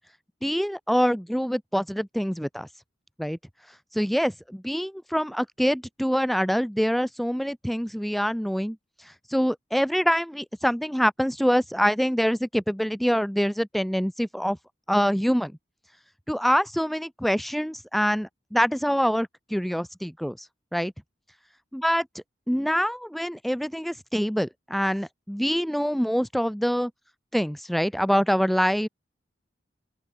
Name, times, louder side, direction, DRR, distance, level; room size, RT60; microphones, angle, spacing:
voice 1, 0.4-2.7 3.2-3.4 3.9-8.8 9.3-14.6 14.9-15.5 16.3-20.4 20.7-20.9 21.7-26.9 27.3-28.9, equal, ahead, 0.5 m, -25 dB
open air
head